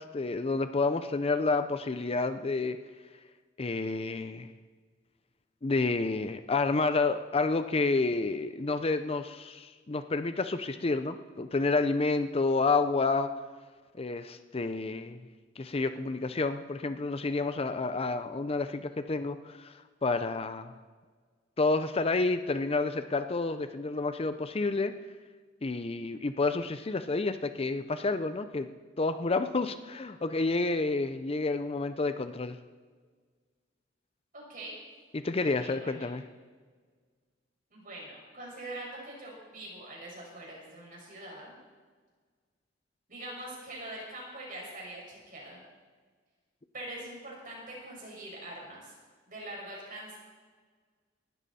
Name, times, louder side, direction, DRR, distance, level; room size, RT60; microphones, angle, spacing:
voice 1, 0.0-2.8 3.6-4.5 5.6-13.3 14.0-15.2 15.6-19.7 20.0-20.7 21.6-24.9 25.6-28.7 29.0-32.6 35.1-36.2, left 3 dB, 30° left, 10 dB, 0.5 m, -29 dB
voice 2, 34.3-34.7 35.4-36.1 37.7-41.6 43.1-45.6 46.7-48.9 49.3-50.2, right 1 dB, 45° right, -3 dB, 5.8 m, -43 dB
19.5 x 12.5 x 4.2 m, 1.5 s
head